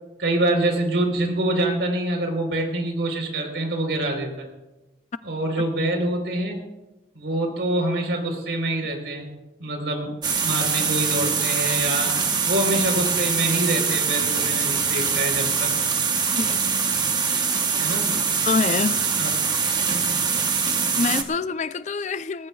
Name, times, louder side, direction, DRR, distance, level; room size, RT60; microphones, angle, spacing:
voice 1, 0.2-4.5 5.2-6.6 7.1-9.3 9.6-10.1 10.4-12.1 12.4-15.7 17.8-18.1 19.2-19.3 19.9-20.0, right 1 dB, 90° right, 3.9 m, -25 dB
sound 1, 10.2-21.2, right 5 dB, 25° right, 1.0 m, -23 dB
voice 2, 18.4-19.0 21.0-22.5, left 4 dB, 40° left, 0.4 m, -25 dB
20.5 x 18.5 x 2.4 m
head